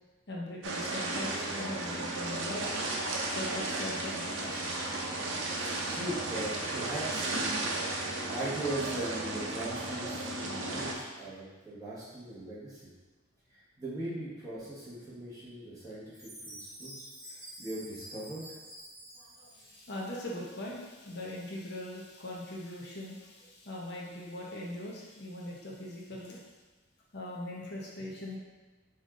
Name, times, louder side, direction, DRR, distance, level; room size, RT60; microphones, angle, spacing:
voice 1, 0.3-2.7 3.3-4.6 19.1-26.4 27.1-28.4, left 1 dB, 55° left, -3 dB, 0.8 m, -40 dB
sound 1, 0.6-10.9, right 2 dB, 80° right, 0.7 m, -34 dB
voice 2, 5.4-8.0 8.3-12.9 13.5-18.4, right 1 dB, 20° right, -10 dB, 1.3 m, -40 dB
Chime, 16.1-20.1, right 1 dB, 35° right, 1.5 m, -49 dB
5.3 x 2.6 x 3.7 m, 1.2 s
head